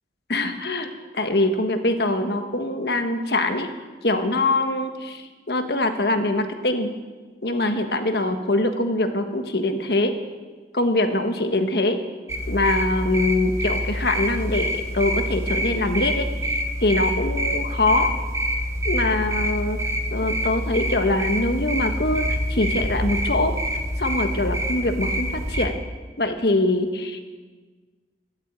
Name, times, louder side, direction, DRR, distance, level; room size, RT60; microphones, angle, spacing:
voice 1, 0.3-3.7 4.0-6.9 7.4-10.2 10.7-12.0 12.5-16.3 16.8-18.1 18.8-19.8 20.1-22.2 22.5-23.6 24.0-25.7 26.2-27.2, left 2 dB, 70° left, 7 dB, 1.5 m, -23 dB
sound 1, 12.3-25.7, equal, 15° right, 1.6 m, -26 dB
13.0 x 12.0 x 8.8 m, 1.4 s
head